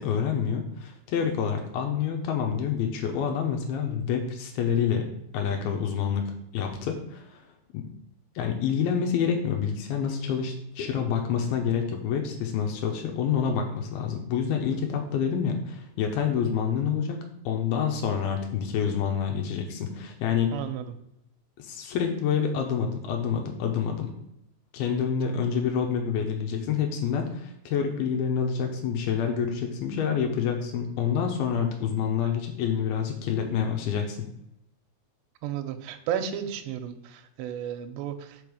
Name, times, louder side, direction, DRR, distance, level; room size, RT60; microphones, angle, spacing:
voice 1, 0.0-5.1 5.3-7.4 7.7-7.9 8.4-17.2 17.5-20.6 21.6-24.1 24.7-34.3, left 7 dB, 85° left, 3 dB, 2.1 m, -27 dB
voice 2, 20.5-21.0 35.4-38.4, right 9 dB, 80° right, 6 dB, 2.7 m, -33 dB
5.7 x 5.3 x 6.3 m, 0.81 s
omnidirectional pair, 5.6 m